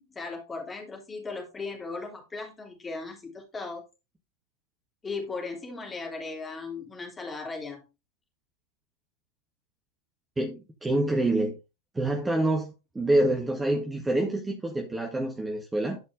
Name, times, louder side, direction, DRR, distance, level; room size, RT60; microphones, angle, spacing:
voice 1, 0.0-3.8 5.0-7.8, left 3 dB, 15° left, 3.3 m, -37 dB
voice 2, 10.4-11.6 11.9-16.0, right 1 dB, 10° right, 1.7 m, -26 dB
12.5 x 5.2 x 3.6 m
figure-of-eight pair, 90°, 0 cm